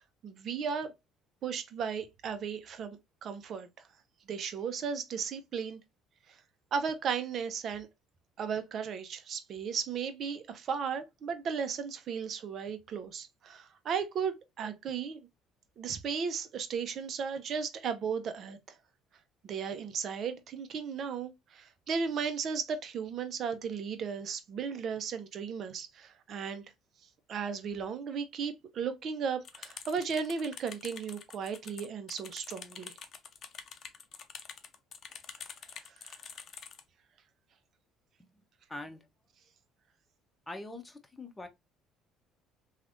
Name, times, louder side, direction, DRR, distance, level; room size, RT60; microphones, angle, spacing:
voice 1, 0.2-0.9 1.4-3.7 4.3-5.8 6.7-7.9 8.4-15.3 15.8-18.6 19.4-26.6 27.3-32.9 36.0-36.1, right 6 dB, 55° right, 0.7 m, -35 dB
sound 1, 29.4-36.8, left 6 dB, 50° left, 0.6 m, -47 dB
voice 2, 38.7-39.1 40.5-41.5, left 2 dB, 15° left, 0.9 m, -43 dB
3.2 x 2.4 x 2.5 m
supercardioid pair, 75°, 0 cm